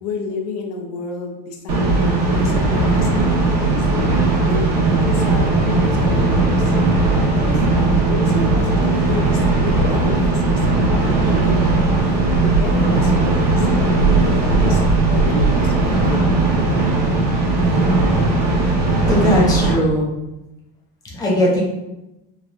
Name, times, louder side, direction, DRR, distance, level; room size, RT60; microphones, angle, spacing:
voice 1, 0.0-3.9 4.4-4.7 5.0-6.7 7.5-7.6 8.1-11.6 12.1-12.3 12.6-14.8 15.1-16.3, left 3 dB, 75° left, 2 dB, 0.6 m, -30 dB
sound 1, 1.7-19.7, right 3 dB, 70° right, 0.9 m, -17 dB
voice 2, 19.1-20.1 21.1-21.6, left 1 dB, 20° left, -3 dB, 0.6 m, -18 dB
3.2 x 2.2 x 2.5 m, 0.95 s
supercardioid pair, 155°, 20 cm